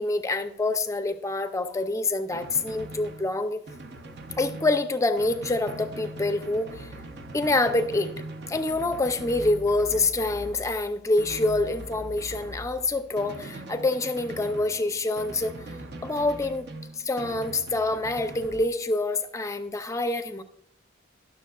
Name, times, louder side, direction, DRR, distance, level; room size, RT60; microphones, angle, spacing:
voice 1, 0.0-3.6 4.4-6.9 7.3-8.1 8.5-15.6 16.0-16.7 17.0-20.4, left 2 dB, 15° left, 9 dB, 0.4 m, -26 dB
Drum, 2.3-18.7, right 1 dB, 60° right, 0.6 m, -41 dB
11.0 x 6.6 x 2.3 m, 0.69 s
head